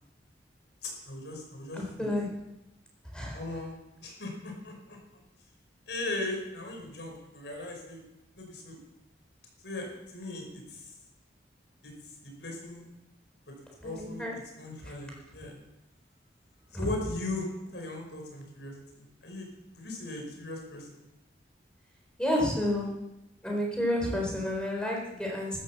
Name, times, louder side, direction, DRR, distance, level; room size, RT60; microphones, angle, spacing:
voice 1, 0.8-2.1 3.3-3.7 4.0-5.0 5.9-8.0 8.4-8.8 9.6-10.9 11.8-11.9 12.2-12.8 13.5-13.6 13.8-14.3 14.6-15.6 16.7-19.5 19.7-20.9, left 2 dB, 75° left, 2 dB, 5.1 m, -38 dB
voice 2, 1.7-2.3 3.1-3.4 13.8-14.4 14.8-14.9 22.2-22.9 23.4-25.6, left 1 dB, 5° left, -1 dB, 4.4 m, -30 dB
14.0 x 12.0 x 7.2 m, 0.92 s
head